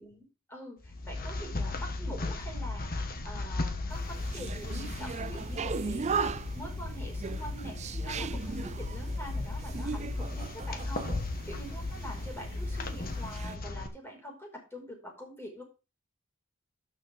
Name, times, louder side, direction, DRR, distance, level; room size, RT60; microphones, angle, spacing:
voice 1, 0.0-2.9 3.2-11.1 11.4-15.6, equal, 10° left, 0 dB, 5.1 m, -45 dB
sound 1, 0.8-13.9, left 2 dB, 45° left, 1.5 m, -36 dB
sound 2, 3.9-13.6, right 5 dB, 30° right, 0.4 m, -38 dB
12.5 x 7.4 x 3.6 m, 0.31 s
head